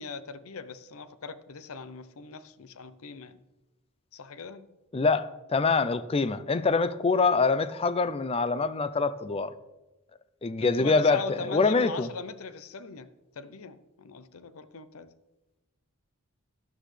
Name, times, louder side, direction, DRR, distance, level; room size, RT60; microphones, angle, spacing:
voice 1, 0.0-3.4 4.1-4.7 10.8-13.1 13.4-15.1, left 4 dB, 65° left, 0.6 m, -40 dB
voice 2, 4.9-9.5 10.4-12.1, left 4 dB, 25° left, 0.4 m, -25 dB
12.5 x 11.0 x 3.3 m
head